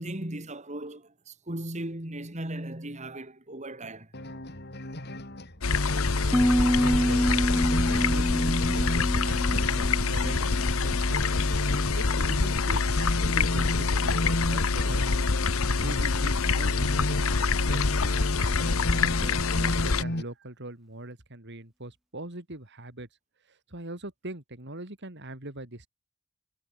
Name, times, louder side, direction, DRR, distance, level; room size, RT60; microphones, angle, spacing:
voice 1, 0.0-4.4, right 1 dB, 30° right, 3.2 m, -37 dB
sound 1, 4.1-20.2, left 1 dB, 50° left, 5.8 m, -35 dB
sound 2, 5.6-20.0, left 4 dB, 70° left, 1.1 m, -26 dB
Piano, 6.3-11.9, equal, ahead, 0.4 m, -28 dB
voice 2, 6.8-10.4 10.8-11.6 12.0-15.2 15.7-17.8 18.4-23.1 23.5-25.9, right 1 dB, 55° right, 3.4 m, -41 dB
head